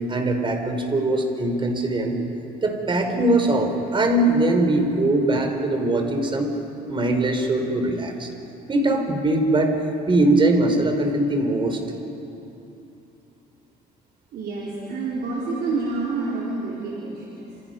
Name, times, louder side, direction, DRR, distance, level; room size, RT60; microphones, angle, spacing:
voice 1, 0.0-2.2 2.6-6.5 6.9-8.3 8.7-9.7 10.1-11.8, right 2 dB, 30° right, 5 dB, 3.9 m, -21 dB
voice 2, 14.3-17.6, right 3 dB, 70° right, -5 dB, 4.5 m, -28 dB
28.0 x 27.5 x 5.6 m, 2.9 s
cardioid pair, 110°, 17 cm